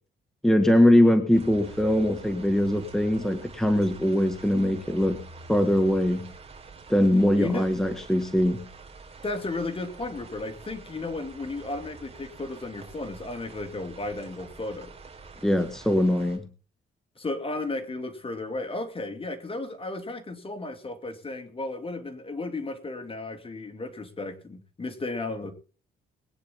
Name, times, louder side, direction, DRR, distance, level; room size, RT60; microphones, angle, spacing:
voice 1, 0.4-5.2 5.5-6.3 6.9-8.6 15.4-16.4, left 1 dB, ahead, 1.9 m, -22 dB
sound 1, 1.3-16.4, right 4 dB, 30° right, 4.3 m, -47 dB
voice 2, 7.4-7.7 9.2-14.9 17.2-25.5, left 2 dB, 30° left, 2.8 m, -34 dB
21.5 x 9.6 x 3.8 m
cardioid pair, 90°, 20 cm